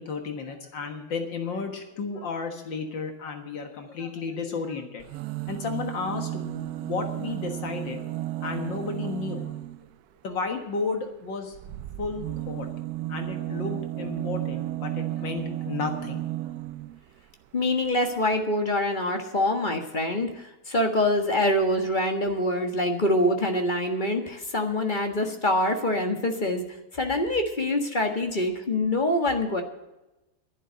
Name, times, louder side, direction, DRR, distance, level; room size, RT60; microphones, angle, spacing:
voice 1, 0.0-5.0 5.5-8.0 8.4-9.5 10.2-11.6 12.0-12.7 13.1-16.2, left 4 dB, 70° left, 5 dB, 2.1 m, -33 dB
Foreboding Vocals, 5.0-9.9 11.5-17.0 17.9-18.0 18.2-18.3, right 15 dB, 70° right, 0.9 m, -33 dB
voice 2, 17.5-26.6 26.9-29.6, left 1 dB, 25° left, 4 dB, 1.5 m, -25 dB
11.5 x 11.0 x 7.8 m, 0.99 s
omnidirectional pair, 2.1 m